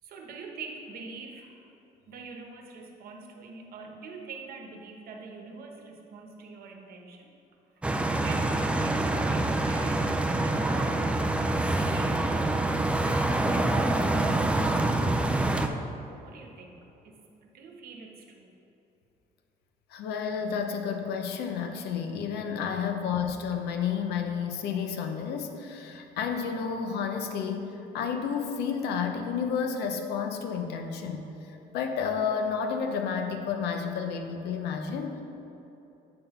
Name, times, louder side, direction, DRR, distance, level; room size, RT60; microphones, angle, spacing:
voice 1, 0.0-1.7 2.1-7.3 7.8-7.9 8.2-11.1 11.4-15.8 16.2-16.8 17.0-18.5 22.8-22.9, right 4 dB, 60° right, 2 dB, 1.1 m, -45 dB
sound 1, 7.8-15.7, right 2 dB, 5° right, 0.4 m, -26 dB
voice 2, 19.9-35.2, left 6 dB, 75° left, 5 dB, 0.7 m, -31 dB
8.8 x 3.9 x 5.4 m, 3.0 s
cardioid pair, 110°, 17 cm